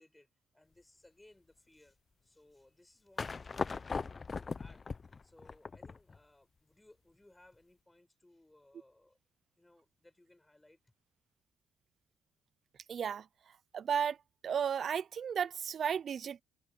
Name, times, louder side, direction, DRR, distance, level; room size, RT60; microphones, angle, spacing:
voice 1, 0.0-2.0 2.2-4.8 5.2-9.2 9.6-10.9, left 1 dB, 10° left, 5.9 m, -63 dB
sound 1, 3.2-6.2, left 4 dB, 35° left, 0.8 m, -39 dB
voice 2, 12.9-13.3 13.7-14.2 14.4-16.4, right 7 dB, 55° right, 0.5 m, -33 dB
cardioid pair, 90°, 0 cm